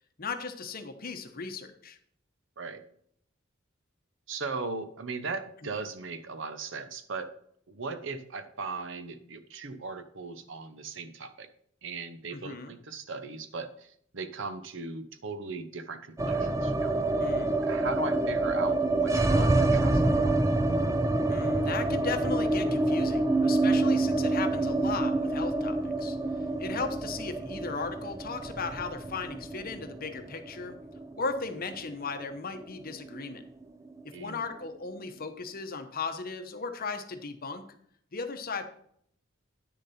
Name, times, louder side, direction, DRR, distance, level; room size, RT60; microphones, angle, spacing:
voice 1, 0.2-2.0 5.6-5.7 12.3-12.8 17.2-17.6 21.3-30.8 31.1-33.4 34.2-37.7 38.1-38.6, left 4 dB, 45° left, 8 dB, 1.0 m, -36 dB
voice 2, 4.3-7.3 7.7-11.5 11.8-16.9 17.7-20.4 34.1-34.4, right 4 dB, 65° right, 10 dB, 0.9 m, -38 dB
sound 1, 16.2-32.3 32.5-32.6 32.9-33.6, right 2 dB, 15° right, 0.5 m, -27 dB
9.8 x 6.6 x 4.3 m, 0.66 s
head